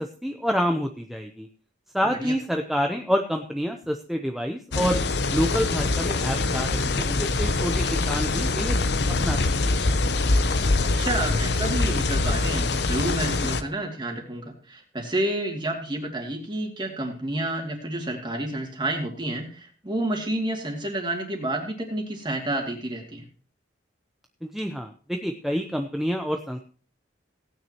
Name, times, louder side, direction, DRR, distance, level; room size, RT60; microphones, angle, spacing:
voice 1, 0.0-1.5 1.9-5.0 5.3-8.8 9.2-9.8 24.4-26.6, equal, ahead, 4 dB, 0.6 m, -28 dB
sound 1, 4.7-13.6, left 3 dB, 60° left, 0.8 m, -24 dB
voice 2, 10.8-23.2, right 1 dB, 25° right, 2 dB, 2.4 m, -30 dB
17.5 x 9.3 x 3.0 m, 0.39 s
head